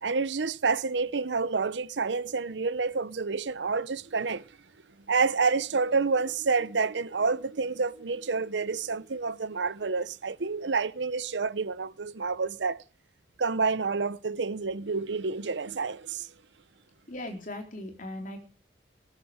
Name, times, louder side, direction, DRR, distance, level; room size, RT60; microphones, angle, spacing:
voice 1, 0.0-4.5 5.1-12.8 13.4-16.3, right 4 dB, 85° right, 0.8 m, -28 dB
voice 2, 17.1-18.4, left 1 dB, 50° left, 3.9 m, -38 dB
19.0 x 9.7 x 5.0 m
head